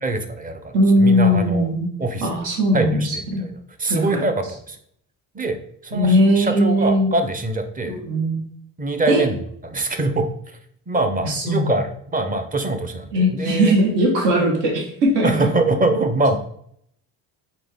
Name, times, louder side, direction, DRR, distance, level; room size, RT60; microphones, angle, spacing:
voice 1, 0.0-1.7 2.0-2.3 2.7-3.5 3.8-4.8 5.3-8.0 8.8-10.6 10.9-13.8 15.2-16.4, right 2 dB, 20° right, 7 dB, 0.6 m, -24 dB
voice 2, 0.7-1.9 2.2-3.4 3.9-4.2 5.9-7.1 7.9-8.4 9.1-9.2 11.2-11.7 13.1-15.4, equal, 80° right, -1 dB, 1.4 m, -19 dB
3.9 x 3.4 x 3.5 m, 0.68 s
supercardioid pair, 85°, 40 cm